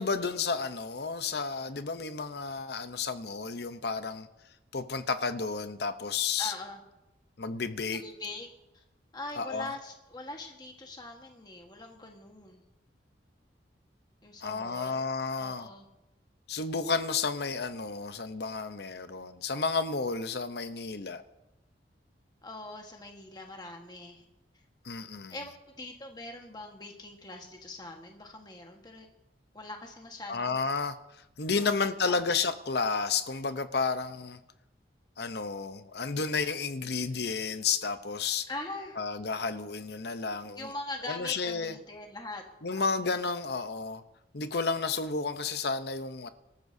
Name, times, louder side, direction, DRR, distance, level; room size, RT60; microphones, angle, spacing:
voice 1, 0.0-4.3 4.7-6.5 7.4-8.0 9.4-9.7 14.4-15.7 16.5-21.2 24.8-25.4 30.3-31.0 31.4-34.4 35.2-38.5 39.0-40.7 41.1-41.7 42.6-44.0 44.3-46.3, left 4 dB, 60° left, 10 dB, 0.8 m, -31 dB
voice 2, 6.4-6.8 8.0-8.5 8.7-8.8 9.1-12.6 14.2-15.1 15.4-15.9 22.4-24.2 25.3-25.5 25.8-29.1 29.5-30.7 31.5-32.3 38.5-39.0 40.6-42.4 42.8-43.3, left 2 dB, 20° left, 2 dB, 1.4 m, -42 dB
26.0 x 13.5 x 2.7 m, 0.96 s
head